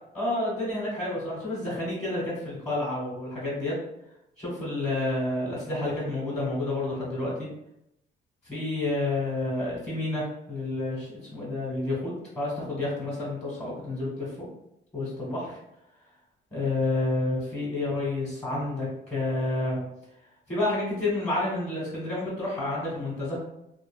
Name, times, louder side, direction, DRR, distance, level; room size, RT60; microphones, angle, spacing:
voice 1, 0.1-3.7 4.4-7.5 8.4-14.5 14.9-15.6 16.5-19.8 20.5-23.4, left 2 dB, 30° left, -7 dB, 1.5 m, -29 dB
2.8 x 2.6 x 2.5 m, 0.81 s
cardioid pair, 90°, 20 cm